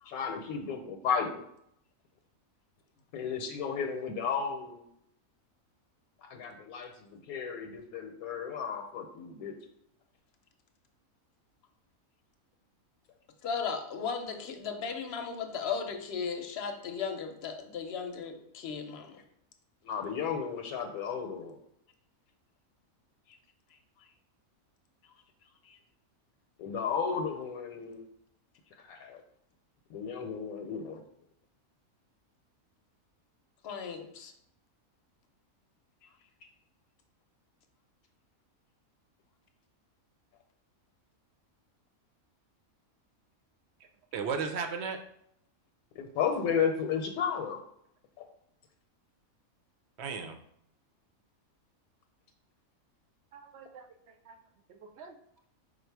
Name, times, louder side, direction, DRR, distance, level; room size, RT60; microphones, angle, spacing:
voice 1, 0.1-1.4 3.1-4.8 6.2-9.6 19.8-21.6 26.6-28.0 28.8-29.2 29.9-31.0 45.9-47.6 48.2-48.3, left 6 dB, 80° left, 4 dB, 1.0 m, -33 dB
voice 2, 13.4-19.2 23.3-23.4 24.0-24.1 25.0-25.1 25.6-25.8 33.6-34.3 36.0-36.1, left 6 dB, 60° left, 5 dB, 0.7 m, -36 dB
voice 3, 44.1-45.0 50.0-50.4 53.3-53.9 54.3-54.4 54.7-55.2, right 5 dB, 65° right, 6 dB, 0.7 m, -36 dB
5.0 x 2.3 x 4.5 m, 0.73 s
omnidirectional pair, 1.5 m